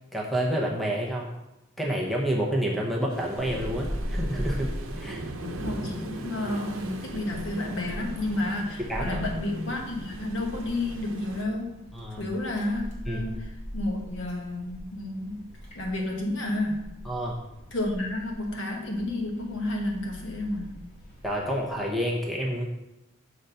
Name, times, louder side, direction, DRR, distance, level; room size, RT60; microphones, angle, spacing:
voice 1, 0.1-1.3 1.8-5.2 8.9-9.2 11.9-12.2 13.1-13.2 17.1-17.4 21.2-22.7, equal, ahead, -2 dB, 0.8 m, -29 dB
Waves surf, 3.1-11.4, right 2 dB, 85° right, 0.8 m, -40 dB
Wind, 3.4-21.9, equal, 35° left, 1.8 m, -40 dB
voice 2, 5.4-11.7 12.2-15.4 15.7-16.9 17.7-20.8, left 1 dB, 65° left, 1 dB, 1.3 m, -31 dB
6.6 x 3.9 x 5.6 m, 0.92 s
head